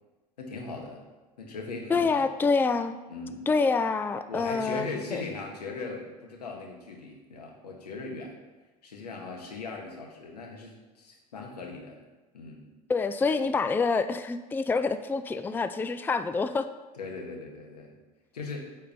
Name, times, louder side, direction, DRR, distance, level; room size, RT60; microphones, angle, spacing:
voice 1, 0.4-1.0 1.4-2.2 3.1-3.4 4.3-8.3 8.8-12.0 12.3-12.6 16.9-17.9 18.3-18.7, left 3 dB, 85° left, 0 dB, 1.9 m, -39 dB
voice 2, 1.9-3.0 3.5-5.2 12.9-16.7, left 4 dB, 10° left, 10 dB, 0.4 m, -27 dB
9.1 x 4.4 x 6.9 m, 1.2 s
hypercardioid pair, 75°, 20 cm